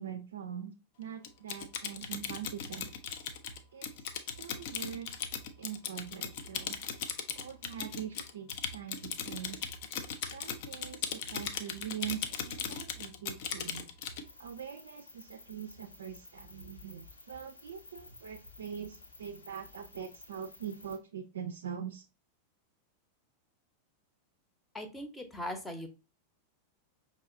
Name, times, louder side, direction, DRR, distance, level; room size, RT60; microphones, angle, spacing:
voice 1, 0.0-2.9 3.7-5.1 5.6-6.8 7.3-9.7 10.2-13.9 14.4-22.1, right 8 dB, 65° right, 7 dB, 0.4 m, -43 dB
Typing, 1.2-14.2, left 7 dB, 50° left, 0.6 m, -38 dB
sound 1, 14.2-21.0, left 2 dB, 80° left, 1.0 m, -53 dB
voice 2, 24.7-25.9, left 1 dB, 10° left, 7 dB, 0.8 m, -39 dB
5.5 x 2.9 x 2.5 m, 0.31 s
figure-of-eight pair, 90°, 0 cm